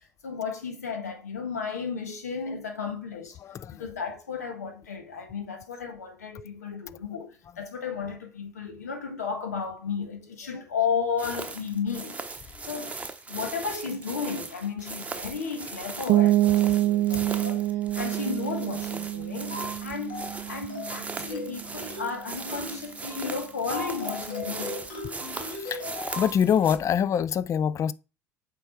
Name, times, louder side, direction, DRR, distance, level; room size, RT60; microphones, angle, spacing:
voice 1, 0.0-3.4 3.7-13.0 13.3-24.8, left 6 dB, 85° left, 1.4 m, -34 dB
voice 2, 3.4-3.8 12.6-12.7 21.2-21.3 25.5-25.9 26.2-27.9, left 8 dB, 35° left, 0.4 m, -25 dB
sound 1, 11.2-26.8, right 3 dB, 15° right, 1.0 m, -39 dB
sound 2, 16.1-21.7, right 14 dB, 45° right, 0.4 m, -26 dB
sound 3, 19.5-19.8 20.1-20.4 20.7-21.0 21.3-21.6 21.9-22.2 22.5-22.8 23.1-23.3 23.7-26.4, left 2 dB, 60° left, 2.2 m, -37 dB
7.7 x 3.5 x 4.6 m
figure-of-eight pair, 65°, 8 cm